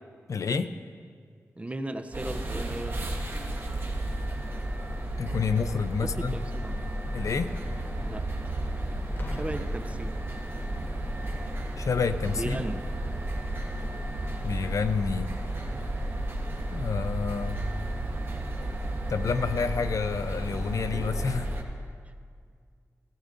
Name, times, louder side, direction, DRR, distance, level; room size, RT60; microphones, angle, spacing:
voice 1, 0.3-0.7 5.2-6.4 7.1-7.5 11.8-12.6 14.4-15.3 16.7-17.7 19.1-21.5, left 5 dB, 80° left, 11 dB, 0.5 m, -29 dB
voice 2, 1.6-3.0 6.0-7.0 8.1-8.3 9.3-10.2 10.8-10.9 12.3-12.9, right 1 dB, 25° right, 9 dB, 0.6 m, -36 dB
sound 1, 2.1-21.6, right 1 dB, 45° right, 1.5 m, -33 dB
Boom, 9.2-10.9 11.8-12.0, left 1 dB, 40° left, 0.7 m, -45 dB
16.0 x 16.0 x 2.6 m, 2.1 s
wide cardioid pair, 70°, 5 cm